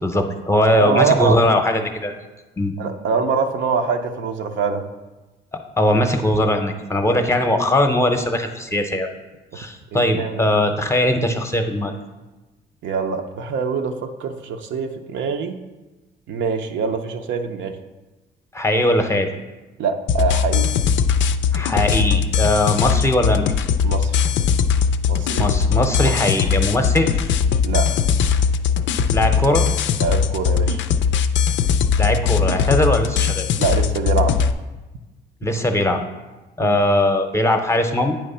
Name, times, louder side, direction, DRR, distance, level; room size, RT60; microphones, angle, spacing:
voice 1, 0.0-2.1 2.6-2.7 5.8-9.1 9.5-11.9 18.5-19.3 21.5-23.5 25.4-27.3 29.1-29.7 32.0-33.5 35.4-36.0 36.6-38.1, left 1 dB, 15° left, 5 dB, 0.7 m, -20 dB
voice 2, 0.7-1.4 2.8-4.8 9.9-10.5 12.8-15.6 16.3-17.8 19.8-20.7 23.8-24.1 25.1-26.1 27.6-28.0 30.0-30.8 33.6-34.4 36.6-36.8, right 5 dB, 70° right, 5 dB, 0.6 m, -24 dB
sound 1, 20.1-34.5, left 6 dB, 70° left, 0.4 m, -20 dB
8.7 x 3.1 x 5.5 m, 1.1 s
cardioid pair, 90°, 20 cm